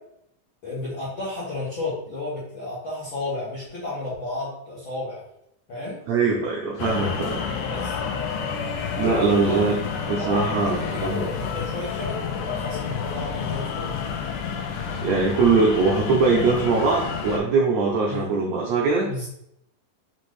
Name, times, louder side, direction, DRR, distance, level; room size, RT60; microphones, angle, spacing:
voice 1, 0.6-5.2 5.7-6.0 7.6-8.0 8.9-9.7 10.2-13.9 18.1-18.3 19.0-19.3, left 2 dB, 60° left, -9 dB, 1.3 m, -32 dB
voice 2, 6.1-7.4 9.0-9.8 10.1-11.3 14.7-19.1, right 4 dB, 90° right, -2 dB, 1.5 m, -22 dB
sound 1, 6.8-17.4, left 6 dB, 80° left, 2.2 m, -29 dB
5.9 x 2.6 x 3.1 m, 0.76 s
omnidirectional pair, 3.9 m